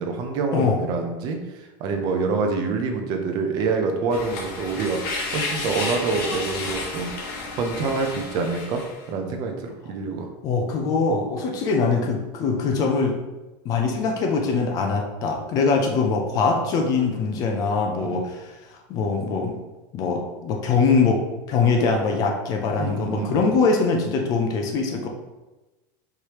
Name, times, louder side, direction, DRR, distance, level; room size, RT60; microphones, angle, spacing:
voice 1, 0.0-5.0 5.3-7.1 7.6-8.8 9.1-10.3 18.0-18.2 22.8-23.5, right 4 dB, 40° right, 4 dB, 0.5 m, -26 dB
voice 2, 0.5-0.9 10.4-13.2 13.6-18.5 18.9-19.5 19.9-21.2 21.5-25.1, left 4 dB, 30° left, 3 dB, 0.5 m, -22 dB
sound 1, 4.1-9.0, left 3 dB, 65° left, 1.2 m, -31 dB
4.6 x 3.3 x 2.9 m, 1.1 s
supercardioid pair, 175°, 11 cm